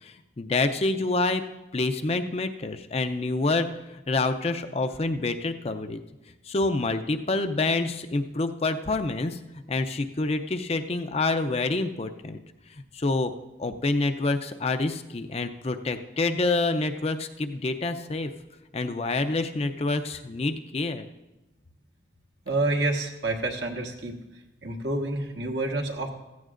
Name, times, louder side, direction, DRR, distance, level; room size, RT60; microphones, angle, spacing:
voice 1, 0.0-1.4 1.7-6.0 6.4-12.4 12.7-13.3 13.6-18.3 18.7-21.0, left 3 dB, 35° left, 8 dB, 0.5 m, -27 dB
voice 2, 22.4-24.1 24.6-26.1, right 2 dB, 75° right, 2 dB, 1.4 m, -28 dB
15.5 x 14.5 x 2.5 m, 1.0 s
head